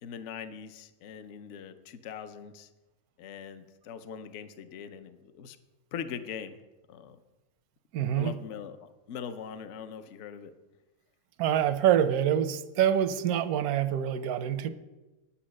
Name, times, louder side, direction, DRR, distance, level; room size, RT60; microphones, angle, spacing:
voice 1, 0.0-2.7 3.2-5.6 5.9-6.6 6.9-7.2 8.1-10.5, left 7 dB, 60° left, 10 dB, 0.9 m, -41 dB
voice 2, 7.9-8.3 11.4-14.7, right 10 dB, 90° right, 12 dB, 1.1 m, -26 dB
9.2 x 8.7 x 6.3 m, 1.1 s
omnidirectional pair, 1.5 m